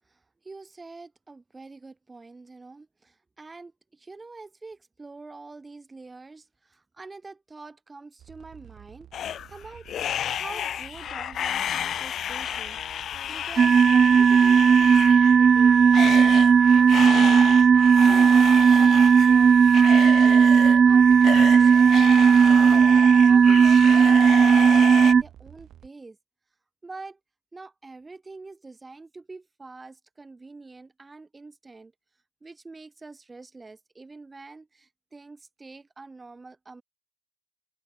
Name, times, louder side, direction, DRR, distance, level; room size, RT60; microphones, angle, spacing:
voice 1, 0.0-9.1 9.5-9.9 10.3-17.6 18.0-26.2 26.8-27.2 27.5-31.9 32.4-36.8, right 3 dB, 15° right, 3.9 m, -45 dB
sound 1, 8.2-25.9, right 11 dB, 50° right, 5.2 m, -50 dB
sound 2, 9.1-25.1, left 10 dB, 45° left, 0.6 m, -32 dB
sound 3, 13.6-25.2, right 6 dB, 30° right, 0.3 m, -16 dB
open air
cardioid pair, 120°, 0 cm